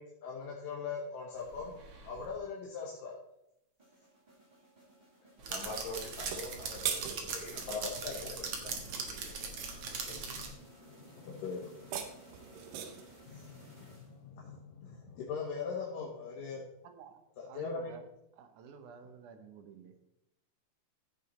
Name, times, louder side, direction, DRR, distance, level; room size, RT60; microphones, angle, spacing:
voice 1, 0.0-1.7 2.0-3.1 7.7-8.3 10.4-10.5 10.9-12.2 12.9-13.0 13.2-16.7 17.4-17.9, left 5 dB, 75° left, -4 dB, 3.2 m, -41 dB
sound 1, 1.4-2.3 5.4-10.5, right 4 dB, 55° right, 2.0 m, -40 dB
sound 2, 3.8-14.5, right 1 dB, 20° right, 1.5 m, -58 dB
voice 2, 5.4-9.6 10.0-10.3, left 2 dB, 60° left, -4 dB, 4.4 m, -46 dB
sound 3, 6.1-7.7 11.6-13.2, right 8 dB, 85° right, 2.7 m, -39 dB
voice 3, 16.8-17.2 17.5-18.0 18.3-20.0, right 6 dB, 70° right, 7 dB, 2.3 m, -51 dB
15.0 x 6.4 x 4.2 m, 0.82 s
omnidirectional pair, 3.9 m